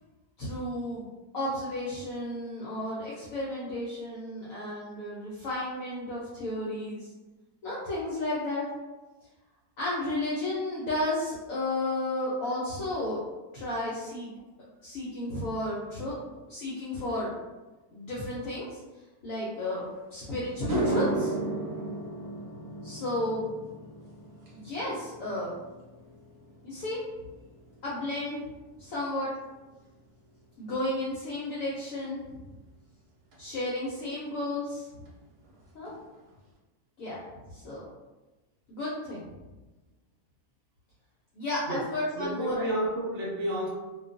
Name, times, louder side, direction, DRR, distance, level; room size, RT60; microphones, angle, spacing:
voice 1, 0.4-1.1 1.3-7.1 7.6-8.6 9.8-13.2 13.5-14.3 14.8-16.2 16.5-17.3 17.9-18.8 19.2-19.8 20.1-21.3 22.8-23.5 24.5-25.5 26.6-27.0 27.8-28.5 28.8-29.3 30.6-32.2 33.4-35.0 35.7-35.9 37.0-37.2 37.5-37.8 38.7-39.3 41.3-42.7, left 1 dB, 65° left, -7 dB, 0.9 m, -32 dB
sound 1, 20.0-20.1 20.5-29.0 29.3-29.7 33.3-33.4 35.1-35.2 35.4-35.6 35.8-36.4, right 2 dB, 80° right, 1.2 m, -35 dB
voice 2, 42.1-43.7, right 1 dB, 55° right, -5 dB, 0.9 m, -31 dB
2.5 x 2.2 x 2.5 m, 1.1 s
omnidirectional pair, 1.6 m